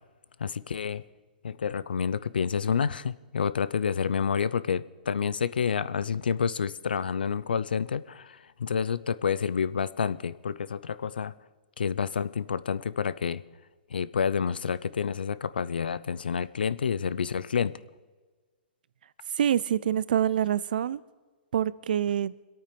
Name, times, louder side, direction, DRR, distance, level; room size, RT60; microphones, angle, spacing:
voice 1, 0.4-1.0 1.4-11.3 11.8-13.4 13.9-17.7, left 6 dB, 85° left, 0.5 m, -29 dB
voice 2, 19.4-21.0 21.5-22.3, right 9 dB, 70° right, 0.5 m, -26 dB
25.5 x 8.9 x 5.2 m
hypercardioid pair, 130°, 5 cm